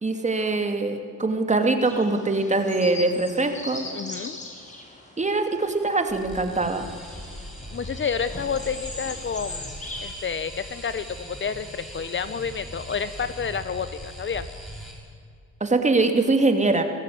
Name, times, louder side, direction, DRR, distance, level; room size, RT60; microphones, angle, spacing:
voice 1, 0.0-3.8 5.2-6.9 15.6-16.8, right 3 dB, 25° right, 6 dB, 2.6 m, -23 dB
sound 1, 1.8-10.1, left 2 dB, 25° left, 5.1 m, -40 dB
voice 2, 3.9-4.4 7.7-14.5, left 6 dB, 40° left, 13 dB, 1.0 m, -30 dB
sound 2, 6.1-14.9, equal, ahead, 7.2 m, -40 dB
23.5 x 15.0 x 9.5 m, 2.3 s
cardioid pair, 90°, 30 cm